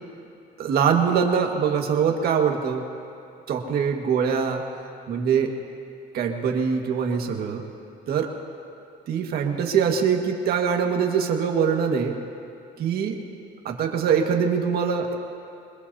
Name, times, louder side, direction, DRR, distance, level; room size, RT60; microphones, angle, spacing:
voice 1, 0.6-2.8 3.5-4.6 5.1-5.5 6.1-7.6 8.1-8.3 9.1-12.2 12.8-13.1 13.7-15.1, right 7 dB, 65° right, 2 dB, 1.8 m, -23 dB
25.0 x 20.5 x 2.8 m, 2.6 s
cardioid pair, 110°, 17 cm